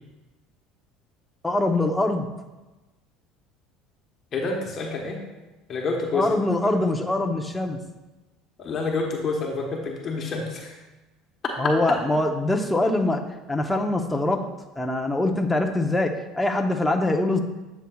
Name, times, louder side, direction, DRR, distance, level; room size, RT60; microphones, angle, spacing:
voice 1, 1.4-2.3 6.1-7.8 11.6-13.2 13.5-14.5 14.8-17.4, left 2 dB, 5° left, 3 dB, 0.7 m, -23 dB
voice 2, 4.3-5.2 5.7-6.3 8.6-10.7, left 3 dB, 40° left, 0 dB, 1.1 m, -28 dB
9.0 x 7.0 x 2.3 m, 1.1 s
supercardioid pair, 110°, 0 cm